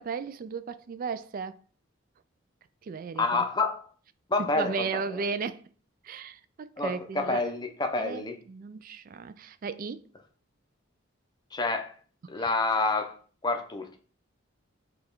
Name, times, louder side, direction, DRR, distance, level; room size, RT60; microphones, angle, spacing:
voice 1, 0.0-1.6 2.8-3.5 4.4-5.7 6.0-7.4 8.0-8.2 8.5-10.1 12.3-12.5, right 5 dB, 45° right, 0.3 m, -35 dB
voice 2, 3.2-3.8 4.3-5.2 6.8-8.4 11.5-12.0 12.3-13.2 13.4-14.0, left 3 dB, 20° left, 0.6 m, -28 dB
5.1 x 2.3 x 4.4 m
head